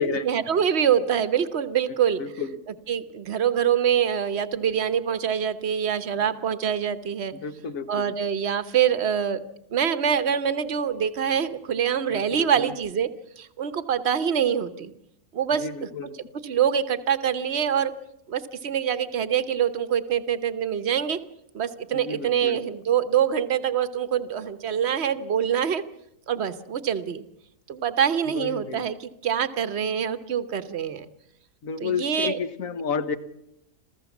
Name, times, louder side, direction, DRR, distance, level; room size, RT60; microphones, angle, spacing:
voice 1, 0.0-2.2 2.9-7.3 7.9-9.4 9.7-13.1 13.4-14.9 15.3-15.9 16.4-17.9 18.3-21.2 21.5-25.8 26.3-27.2 27.7-31.1 31.8-32.4, right 8 dB, 45° right, 11 dB, 1.2 m, -25 dB
voice 2, 2.2-2.5 7.4-8.1 12.1-12.7 15.5-16.2 21.9-22.6 28.3-28.9 31.6-33.2, left 5 dB, 60° left, 11 dB, 1.5 m, -31 dB
27.0 x 15.0 x 7.2 m, 0.81 s
omnidirectional pair, 1.7 m